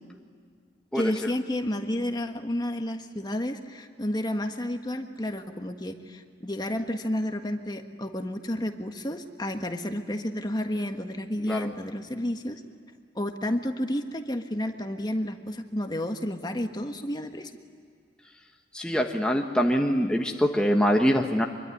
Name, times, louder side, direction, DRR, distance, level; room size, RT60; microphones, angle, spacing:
voice 1, 0.9-12.6 13.1-17.5, left 1 dB, 25° left, 6 dB, 1.5 m, -31 dB
voice 2, 18.7-21.5, equal, 5° left, 1 dB, 1.3 m, -24 dB
25.0 x 23.5 x 9.8 m, 2.1 s
head